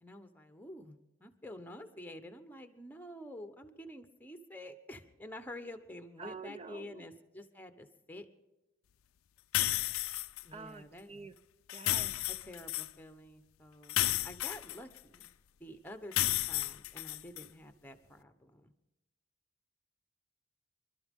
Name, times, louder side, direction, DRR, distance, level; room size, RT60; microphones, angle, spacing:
voice 1, 0.0-8.3 10.4-11.1 12.3-15.3 15.6-18.7, left 1 dB, 10° left, 8 dB, 1.0 m, -49 dB
voice 2, 6.2-7.1 10.5-11.3 11.7-12.2, right 4 dB, 30° right, 12 dB, 0.6 m, -47 dB
sound 1, 9.5-10.4 11.7-12.9 13.9-15.3 16.1-17.5, left 16 dB, 85° left, 0.4 m, -32 dB
27.0 x 12.5 x 3.7 m, 1.0 s
head